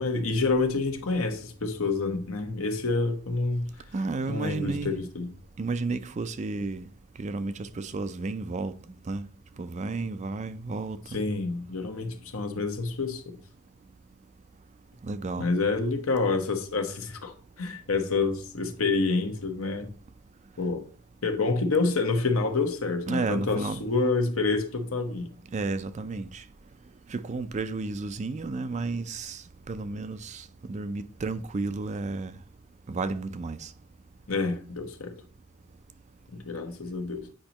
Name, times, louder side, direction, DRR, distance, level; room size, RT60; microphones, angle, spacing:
voice 1, 0.0-3.7 4.3-5.3 11.1-13.4 15.4-19.9 20.6-20.8 21.2-25.3 34.3-35.1 36.3-37.3, left 3 dB, 75° left, 1.1 m, -28 dB
voice 2, 3.9-4.9 5.6-6.9 7.2-8.8 9.1-9.3 9.6-11.2 15.0-15.5 23.1-23.8 25.5-26.4 27.1-32.4 32.9-33.7, right 3 dB, 35° right, 0.4 m, -32 dB
8.7 x 5.1 x 2.9 m
head